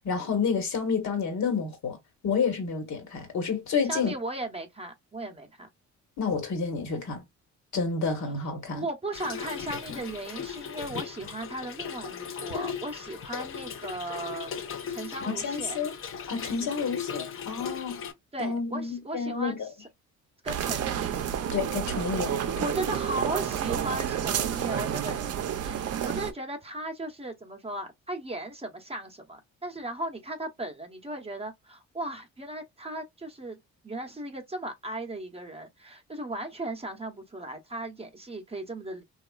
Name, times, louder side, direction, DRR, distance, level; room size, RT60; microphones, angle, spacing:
voice 1, 0.0-2.0 2.2-4.1 6.2-7.2 7.7-8.8 15.2-15.9 16.3-18.0 18.4-19.7 21.5-22.7, left 5 dB, 70° left, 1.3 m, -29 dB
voice 2, 3.9-5.7 8.2-8.3 8.7-14.6 14.9-15.8 16.8-16.9 18.3-19.6 20.4-21.2 22.3-25.2 25.6-33.6 33.8-39.0, right 1 dB, 20° right, 0.7 m, -37 dB
Trickle dribble / Fill (with liquid), 9.1-18.1, left 7 dB, 45° left, 0.6 m, -37 dB
sound 1, 20.5-26.3, right 9 dB, 55° right, 0.6 m, -30 dB
2.9 x 2.4 x 2.2 m
cardioid pair, 90°, 30 cm